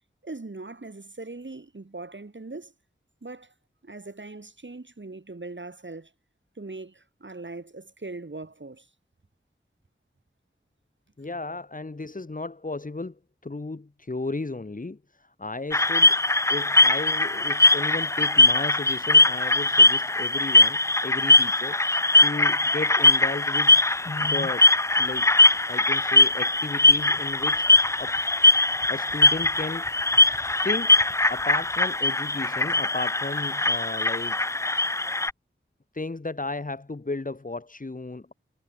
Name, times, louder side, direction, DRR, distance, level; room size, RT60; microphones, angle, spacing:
voice 1, 0.2-2.7 3.2-3.5 3.8-6.1 6.6-8.9, right 3 dB, 60° right, 7.0 m, -40 dB
voice 2, 11.2-16.2 16.5-21.8 22.2-25.3 25.7-27.7 28.0-28.1 28.9-29.9 30.6-31.0 31.3-34.4 35.9-38.3, left 3 dB, 40° left, 1.5 m, -34 dB
sound 1, 15.7-35.3, left 2 dB, 15° left, 0.3 m, -21 dB
wide cardioid pair, 60°, 21 cm